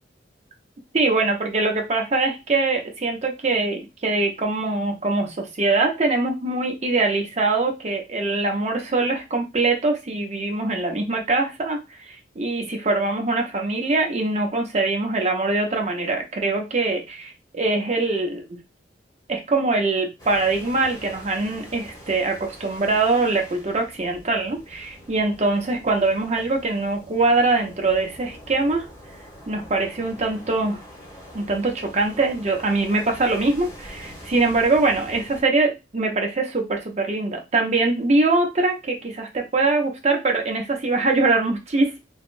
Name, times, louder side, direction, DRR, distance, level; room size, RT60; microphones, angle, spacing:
voice 1, 0.9-11.8 12.1-18.6 19.3-28.9 29.5-30.8 31.3-42.0, right 3 dB, 35° right, 2 dB, 0.7 m, -23 dB
sound 1, 20.2-35.4, equal, 20° left, 1.1 m, -44 dB
3.5 x 2.2 x 2.5 m, 0.25 s
head